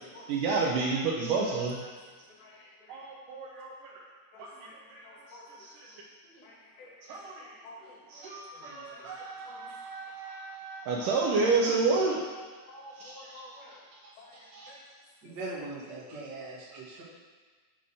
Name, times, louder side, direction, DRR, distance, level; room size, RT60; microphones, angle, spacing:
voice 1, 0.3-1.8 2.9-4.0 4.4-4.5 4.9-6.0 7.1-7.6 8.1-12.2 13.0-13.5 14.3-14.7, right 4 dB, 90° right, -2 dB, 1.8 m, -31 dB
voice 2, 2.4-3.0 4.3-4.8 5.0-5.7 6.2-6.9 7.4-9.1 9.5-9.7 12.7-13.8 14.2-14.8 15.3-15.4, left 1 dB, 80° left, -5 dB, 4.1 m, -52 dB
voice 3, 15.2-17.0, right 2 dB, 40° right, -7 dB, 1.5 m, -41 dB
9.4 x 4.4 x 6.4 m, 1.4 s
omnidirectional pair, 4.9 m